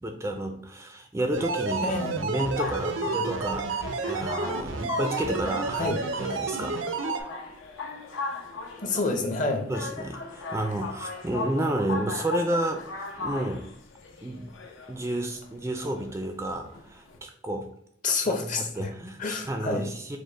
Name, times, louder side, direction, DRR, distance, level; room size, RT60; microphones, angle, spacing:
voice 1, 0.0-5.9 6.2-6.8 9.7-13.7 14.2-14.5 14.9-17.7 18.1-18.4 18.8-20.2, right 1 dB, 15° right, 5 dB, 0.3 m, -31 dB
sound 1, 1.3-7.2, right 4 dB, 80° right, 0.5 m, -31 dB
voice 2, 1.8-2.3 5.7-6.0 8.8-9.7 18.0-18.9 19.2-19.9, left 3 dB, 40° left, 4 dB, 0.7 m, -28 dB
sound 2, 2.3-17.2, left 4 dB, 90° left, 0.7 m, -38 dB
5.1 x 2.1 x 3.8 m, 0.72 s
head